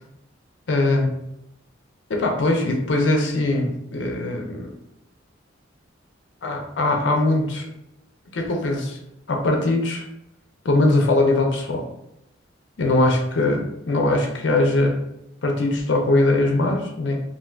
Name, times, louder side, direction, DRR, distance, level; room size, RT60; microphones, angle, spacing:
voice 1, 0.7-1.1 2.1-4.7 6.4-7.7 8.3-9.0 9.3-10.1 10.6-11.9 12.8-15.0 15.4-17.2, left 2 dB, 65° left, 2 dB, 0.5 m, -21 dB
3.4 x 2.4 x 2.4 m, 0.84 s
head